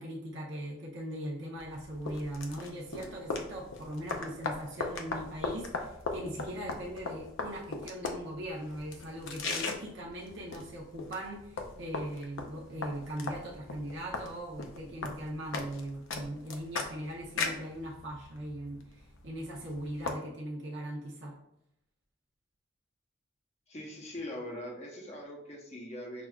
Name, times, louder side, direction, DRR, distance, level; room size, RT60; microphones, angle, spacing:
voice 1, 0.0-21.4, right 1 dB, 65° right, -3 dB, 0.7 m, -40 dB
sound 1, 1.6-20.1, left 3 dB, 75° left, 0.5 m, -39 dB
voice 2, 23.7-26.3, left 1 dB, 35° left, -1 dB, 0.7 m, -42 dB
6.0 x 2.4 x 2.3 m, 0.78 s
head